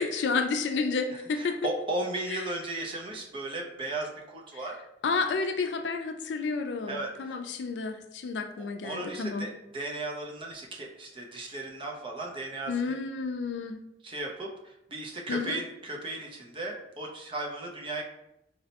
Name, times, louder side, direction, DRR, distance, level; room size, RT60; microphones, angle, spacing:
voice 1, 0.0-1.5 2.3-2.4 5.0-9.5 12.7-13.8 15.3-15.6, left 4 dB, 80° left, 6 dB, 0.4 m, -30 dB
voice 2, 1.4-4.7 6.9-7.4 8.6-13.0 14.0-18.0, right 2 dB, 30° right, 0 dB, 0.5 m, -36 dB
3.9 x 2.1 x 2.8 m, 0.83 s
head